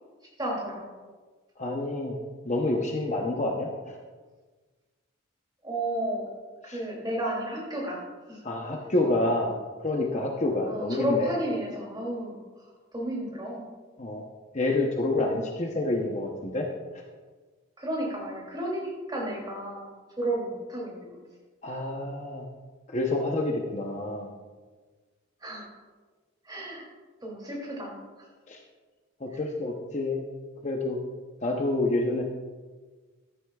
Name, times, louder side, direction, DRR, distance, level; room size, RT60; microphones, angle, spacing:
voice 1, 0.4-0.9 5.6-6.3 6.6-8.0 8.3-8.4 10.7-12.4 12.9-13.6 17.8-19.9 20.2-21.2 25.4-25.6 26.4-26.9 27.2-28.0, right 1 dB, 20° right, -3 dB, 2.7 m, -32 dB
voice 2, 1.6-2.2 2.4-4.0 6.7-6.8 8.4-9.6 9.8-11.4 14.0-14.2 14.5-16.7 16.9-17.0 21.6-22.5 22.9-24.3 28.5-28.6 29.2-30.2 30.6-31.0 31.4-32.2, left 2 dB, 35° left, 1 dB, 0.8 m, -28 dB
14.5 x 9.8 x 2.3 m, 1.4 s
head